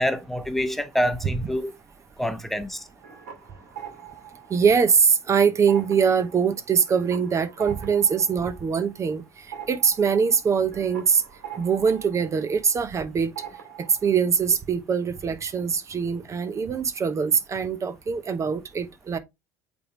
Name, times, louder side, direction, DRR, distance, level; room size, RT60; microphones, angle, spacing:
voice 1, 0.0-1.7 2.2-2.8, equal, 5° left, 1.0 m, -26 dB
sound 1, 2.8-5.3 5.6-13.0 13.4-14.2, right 9 dB, 80° right, 2.3 m, -43 dB
voice 2, 4.5-11.2 11.6-13.3 14.0-19.2, right 6 dB, 35° right, 1.0 m, -23 dB
8.2 x 3.7 x 3.1 m
hypercardioid pair, 70°, 9 cm